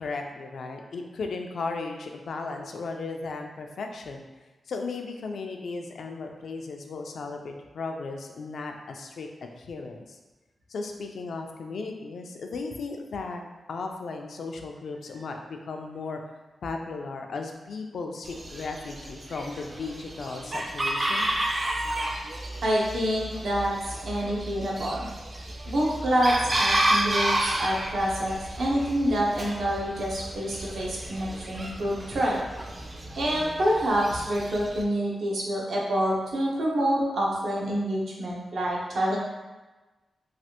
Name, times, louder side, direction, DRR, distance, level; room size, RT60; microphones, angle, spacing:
voice 1, 0.0-4.2 4.7-10.2 10.7-13.4 13.7-16.2 16.6-21.3, left 3 dB, 75° left, 3 dB, 0.3 m, -36 dB
Chicken rooster, 18.2-34.8, right 1 dB, 30° right, 0.4 m, -31 dB
voice 2, 22.6-25.1 25.7-32.4 33.2-39.2, equal, 80° right, -4 dB, 0.7 m, -27 dB
3.2 x 2.4 x 2.8 m, 1.2 s
wide cardioid pair, 105°, 0 cm